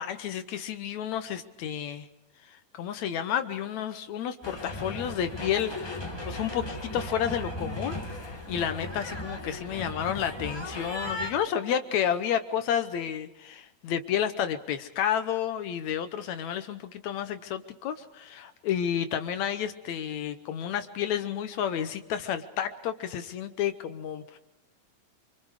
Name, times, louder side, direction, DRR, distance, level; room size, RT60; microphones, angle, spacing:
voice 1, 0.0-2.1 2.5-24.4, left 9 dB, 70° left, 10 dB, 1.9 m, -31 dB
sound 1, 4.4-11.3, left 1 dB, 10° left, 1.1 m, -37 dB
26.0 x 25.0 x 4.9 m, 0.92 s
omnidirectional pair, 4.0 m